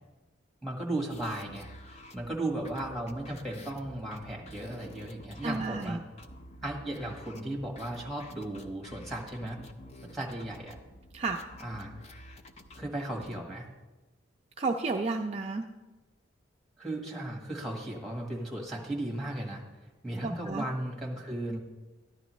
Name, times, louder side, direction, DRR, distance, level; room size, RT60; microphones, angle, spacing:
voice 1, 0.6-6.0 6.6-9.6 10.1-10.8 11.6-11.9 12.7-13.7 16.8-19.6 20.0-21.6, right 1 dB, ahead, -1 dB, 1.4 m, -36 dB
sound 1, 1.1-13.4, left 1 dB, 35° left, 0.6 m, -50 dB
voice 2, 5.4-6.0 11.1-11.4 14.6-15.6 20.2-20.6, right 3 dB, 30° right, 2 dB, 0.4 m, -31 dB
13.5 x 10.5 x 3.1 m, 1.2 s
head